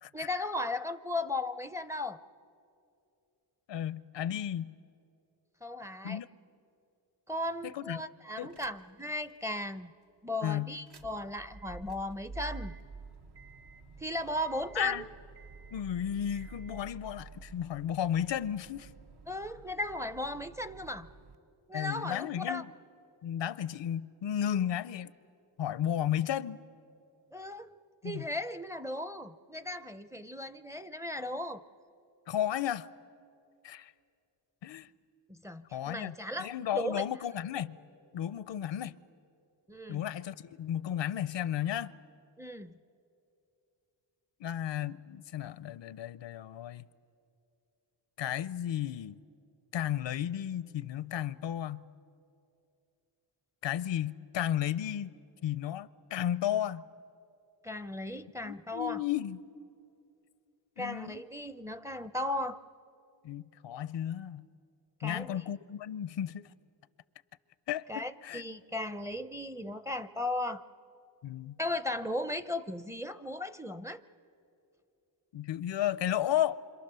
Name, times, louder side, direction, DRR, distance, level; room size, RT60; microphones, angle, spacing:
voice 1, 0.1-2.2 5.6-6.2 7.3-9.9 10.2-12.7 14.0-15.1 19.3-21.1 21.7-22.6 27.3-27.8 28.0-31.6 35.3-37.0 39.7-40.0 42.4-42.7 57.6-59.0 60.8-62.6 65.0-65.4 67.9-70.7 71.6-74.0, left 1 dB, 5° right, 0.5 m, -36 dB
voice 2, 3.7-4.7 6.0-6.3 7.6-8.0 8.4-8.6 10.4-10.7 14.8-15.1 15.7-18.9 21.7-22.7 23.2-25.1 25.6-26.6 28.0-28.2 32.3-32.9 33.6-33.9 34.6-34.9 35.7-37.8 38.1-39.0 39.9-41.9 44.4-46.8 48.2-49.2 49.7-51.8 53.6-55.1 55.4-56.8 58.4-59.4 60.8-61.2 63.2-64.5 65.0-66.5 67.7-68.4 71.2-71.6 75.3-76.5, left 10 dB, 90° left, 0.6 m, -33 dB
sound 1, 8.5-9.0 9.4-9.5 10.7-21.4, right 4 dB, 65° right, 1.2 m, -49 dB
27.5 x 26.0 x 6.8 m
wide cardioid pair, 105°, 43 cm